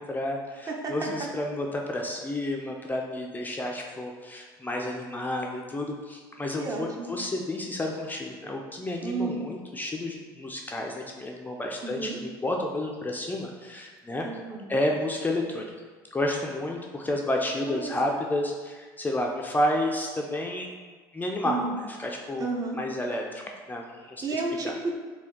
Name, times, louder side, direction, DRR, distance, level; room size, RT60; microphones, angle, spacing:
voice 1, 0.0-14.3 14.7-15.7 16.1-20.7 21.1-21.6 22.0-22.5 22.8-23.4 23.7-24.2 24.6-24.7, left 1 dB, 15° left, 0 dB, 0.4 m, -30 dB
voice 2, 0.7-1.3 6.6-7.2 9.0-9.4 11.8-12.2 14.2-14.7 17.7-18.1 21.4-21.7 22.4-22.8 24.0-24.9, right 3 dB, 30° right, 1 dB, 0.7 m, -32 dB
4.3 x 2.2 x 3.6 m, 1.5 s
hypercardioid pair, 75°, 11 cm